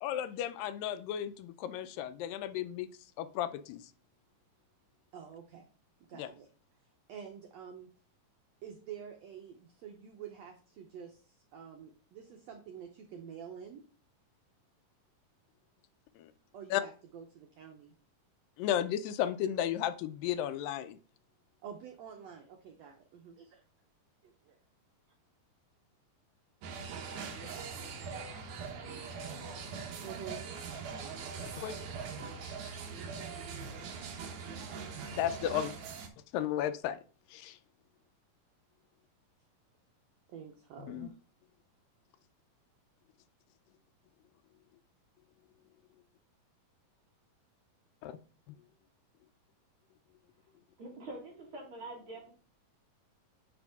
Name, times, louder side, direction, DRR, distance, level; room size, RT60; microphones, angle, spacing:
voice 1, 0.0-2.9 3.2-3.8 6.2-6.3 16.2-16.3 16.7-16.8 18.6-21.0 31.6-31.8 32.6-32.7 35.1-35.7 36.3-37.0 37.3-37.6 40.8-41.1 48.0-48.2, left 11 dB, 85° left, 12 dB, 2.2 m, -34 dB
voice 2, 5.1-5.7 6.0-6.5 7.1-7.9 8.6-13.8 16.5-17.9 21.6-23.6 24.2-24.6 30.0-30.5 35.1-35.6 40.3-41.1, right 8 dB, 85° right, 3 dB, 1.5 m, -48 dB
sound 1, 26.6-36.1, right 5 dB, 65° right, 2.2 m, -42 dB
voice 3, 50.8-52.3, right 2 dB, 40° right, -2 dB, 2.3 m, -45 dB
9.9 x 3.5 x 3.5 m, 0.38 s
omnidirectional pair, 4.0 m